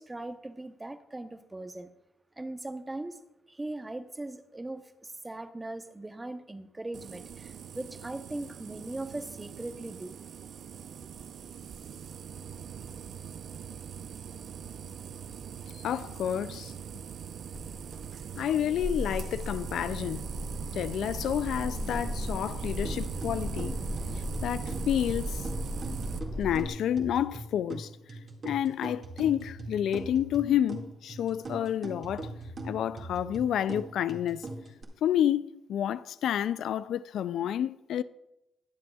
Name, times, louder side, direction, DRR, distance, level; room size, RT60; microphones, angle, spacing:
voice 1, 0.0-1.9 2.4-3.2 3.5-10.2, right 2 dB, 20° right, 0.8 m, -39 dB
sound 1, 6.9-26.2, right 7 dB, 70° right, 0.5 m, -41 dB
voice 2, 15.7-16.7 18.4-20.2 20.7-23.8 24.4-25.4 26.4-27.9 28.4-32.3 32.6-34.5 35.0-38.0, left 10 dB, 80° left, 0.3 m, -29 dB
sound 2, 17.5-26.7, left 1 dB, 15° left, 2.3 m, -37 dB
sound 3, 22.8-34.8, right 2 dB, 50° right, 2.0 m, -41 dB
21.0 x 7.6 x 2.4 m
cardioid pair, 80°, 0 cm